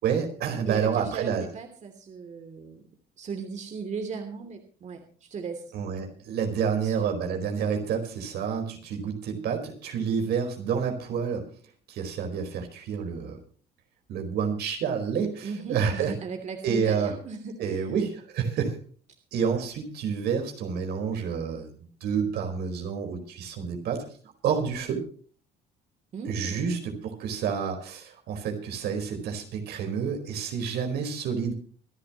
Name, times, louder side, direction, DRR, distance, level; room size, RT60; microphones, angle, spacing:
voice 1, 0.0-1.5 5.7-11.4 11.9-13.4 14.1-16.1 16.6-17.1 17.6-18.8 19.3-24.0 24.4-25.0 26.3-31.5, right 6 dB, 75° right, 4 dB, 4.6 m, -29 dB
voice 2, 0.7-2.8 3.2-5.6 6.8-7.1 15.4-17.8 26.1-26.8, right 5 dB, 45° right, 5 dB, 3.0 m, -37 dB
26.0 x 11.0 x 3.0 m, 0.43 s
cardioid pair, 110°, 17 cm